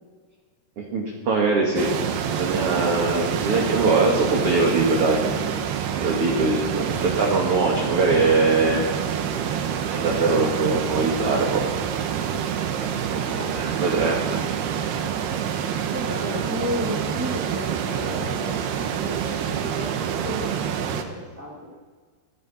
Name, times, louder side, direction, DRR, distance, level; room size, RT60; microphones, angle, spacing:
voice 1, 0.8-1.9 2.2-5.2 6.0-8.9 9.9-11.6 13.5-14.1, right 3 dB, 45° right, -1 dB, 2.3 m, -22 dB
sound 1, 1.8-21.0, right 8 dB, 80° right, 3.0 m, -27 dB
voice 2, 13.1-13.6 13.9-14.5 15.9-21.7, equal, 25° right, -2 dB, 0.3 m, -33 dB
23.5 x 14.0 x 4.3 m, 1.5 s
omnidirectional pair, 4.7 m